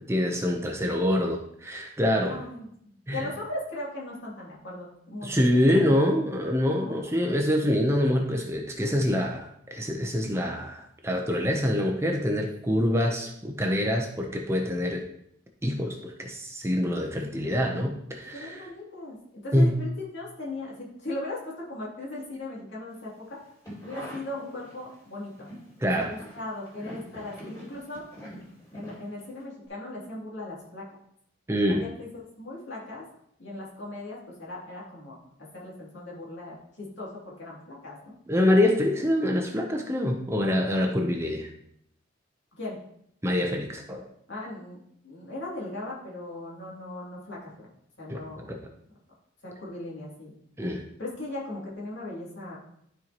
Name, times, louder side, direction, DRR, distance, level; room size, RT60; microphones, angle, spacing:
voice 1, 0.1-2.4 3.1-3.3 5.2-15.0 15.6-18.6 19.5-19.8 25.8-26.1 31.5-31.9 38.3-41.5 43.2-44.0 48.1-48.2 48.5-48.6 50.6-50.9, left 1 dB, 15° right, 2 dB, 0.7 m, -25 dB
voice 2, 2.2-5.9 6.8-7.3 12.7-13.2 17.3-17.9 18.3-19.2 19.4-23.4 23.8-25.5 26.0-28.0 28.7-30.8 31.7-32.1 32.4-33.0 33.4-38.1 42.6-42.8 44.3-47.7 48.0-48.5 49.4-50.4 51.0-52.6, left 2 dB, 65° left, -5 dB, 2.6 m, -38 dB
sound 1, 23.4-25.0 25.3-29.4 29.7-29.8, equal, 15° left, 2.3 m, -44 dB
12.0 x 4.5 x 2.9 m, 0.72 s
head